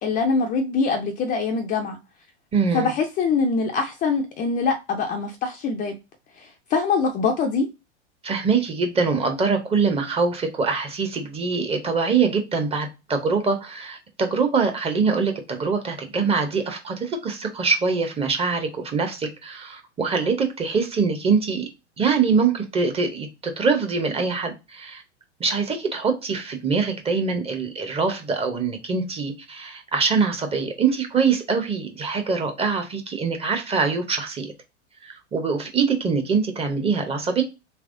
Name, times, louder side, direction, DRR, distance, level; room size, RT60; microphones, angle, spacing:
voice 1, 0.0-2.0 2.7-5.9 6.4-7.7, left 4 dB, 25° left, 0.4 m, -23 dB
voice 2, 2.5-2.9 8.2-21.7 22.0-25.0 25.4-34.5 35.0-37.4, right 5 dB, 15° right, 0.7 m, -24 dB
3.4 x 3.0 x 2.5 m
hypercardioid pair, 100°, 35 cm